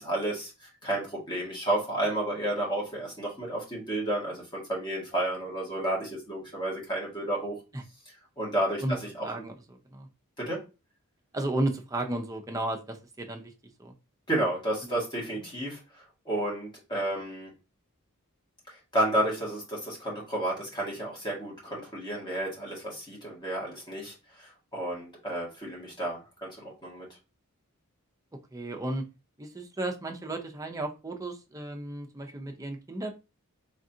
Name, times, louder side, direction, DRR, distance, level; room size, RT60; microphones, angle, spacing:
voice 1, 0.0-7.6 8.4-9.3 10.4-10.6 14.3-17.5 18.7-27.1, right 1 dB, 20° left, -3 dB, 1.7 m, -31 dB
voice 2, 9.2-9.5 9.9-10.1 11.3-13.5 13.8-13.9 14.8-14.9 28.5-29.0 29.4-33.1, right 1 dB, 15° right, 3 dB, 0.6 m, -33 dB
3.8 x 3.6 x 2.7 m, 0.29 s
head